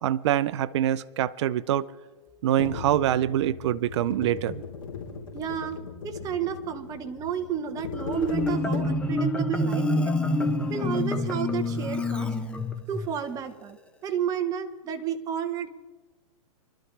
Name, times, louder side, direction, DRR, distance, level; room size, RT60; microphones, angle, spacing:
voice 1, 0.0-1.9 2.4-4.6, right 12 dB, 55° right, 14 dB, 0.5 m, -25 dB
sound 1, 2.6-9.3, left 5 dB, 70° left, 3.8 m, -38 dB
voice 2, 5.3-10.1 10.7-12.3 12.9-15.7, right 8 dB, 20° right, 7 dB, 1.0 m, -32 dB
Marimba xylophone, 7.9-13.1, left 1 dB, 5° left, 0.8 m, -27 dB
24.5 x 12.5 x 3.3 m, 1.3 s
hypercardioid pair, 150°, 18 cm